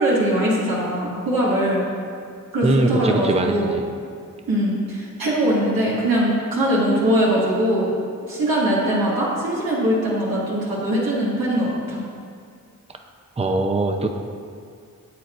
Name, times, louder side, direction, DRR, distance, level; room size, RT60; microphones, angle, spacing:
voice 1, 0.0-1.8 2.5-3.8 4.5-7.9 8.3-12.0, right 1 dB, 90° right, -7 dB, 2.0 m, -21 dB
voice 2, 2.6-3.8 13.4-14.1, right 2 dB, 20° right, 4 dB, 0.6 m, -21 dB
8.5 x 8.0 x 2.5 m, 2.2 s
cardioid pair, 45°, 35 cm